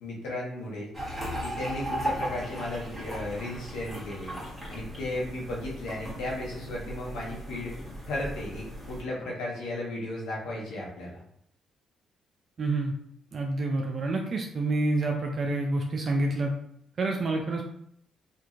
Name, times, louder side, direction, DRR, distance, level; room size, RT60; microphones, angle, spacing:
voice 1, 0.0-0.9 1.4-4.4 4.7-7.8 8.1-11.2, left 1 dB, 90° left, -3 dB, 0.9 m, -35 dB
sound 1, 0.9-9.0, right 1 dB, ahead, 1.2 m, -37 dB
voice 2, 12.6-12.9 13.3-16.5 17.0-17.7, right 2 dB, 45° right, 1 dB, 0.4 m, -28 dB
2.9 x 2.5 x 2.4 m, 0.69 s
cardioid pair, 90°, 0 cm